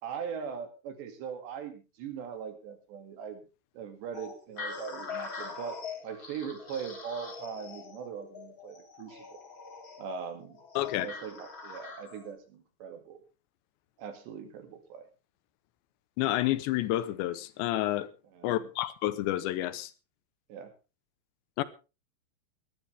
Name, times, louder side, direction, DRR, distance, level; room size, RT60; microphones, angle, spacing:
voice 1, 0.0-3.5 3.7-5.8 6.0-9.4 10.0-10.6 11.0-13.2 14.0-15.1 18.3-18.7 20.5-20.7, right 7 dB, 75° right, 4.5 m, -40 dB
sound 1, 4.1-12.3, left 4 dB, 30° left, 3.3 m, -43 dB
voice 2, 10.8-11.1 16.2-18.1 18.4-19.9 21.6-21.7, left 15 dB, 80° left, 3.1 m, -29 dB
20.5 x 12.5 x 3.5 m
omnidirectional pair, 5.2 m